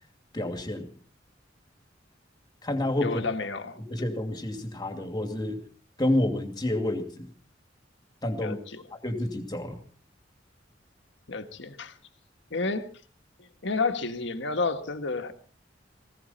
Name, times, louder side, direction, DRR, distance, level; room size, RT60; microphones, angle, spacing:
voice 1, 0.3-0.9 2.6-3.2 3.8-5.6 6.0-7.3 8.2-8.6 8.9-9.8, left 1 dB, 20° left, 2.6 m, -29 dB
voice 2, 3.0-3.8 8.4-8.8 11.3-12.0 12.5-12.9 13.4-15.3, left 3 dB, 70° left, 1.6 m, -30 dB
19.5 x 16.5 x 4.3 m
head